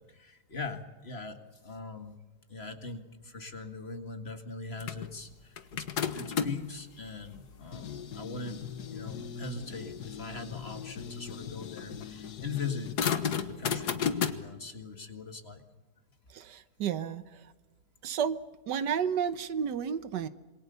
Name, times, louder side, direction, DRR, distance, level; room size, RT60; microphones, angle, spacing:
voice 1, 0.0-2.2 2.5-8.6 8.9-15.6, left 4 dB, 40° left, 7 dB, 2.1 m, -41 dB
sound 1, 4.8-6.7 7.3-14.3, left 7 dB, 70° left, 1.8 m, -35 dB
voice 2, 16.3-17.5 18.0-18.4 18.7-20.3, right 8 dB, 90° right, 13 dB, 1.7 m, -32 dB
27.0 x 22.0 x 6.9 m, 1.2 s
omnidirectional pair, 1.8 m